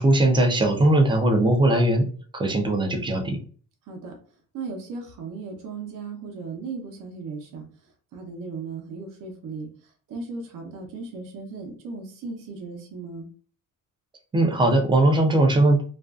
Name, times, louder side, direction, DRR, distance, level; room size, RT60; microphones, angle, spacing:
voice 1, 0.0-2.1 2.3-3.4 14.3-15.8, right 1 dB, 15° right, 3 dB, 0.3 m, -19 dB
voice 2, 4.5-7.7 8.1-9.7 10.1-13.3, right 4 dB, 60° right, 2 dB, 0.7 m, -36 dB
2.5 x 2.2 x 2.3 m, 0.42 s
cardioid pair, 155°, 37 cm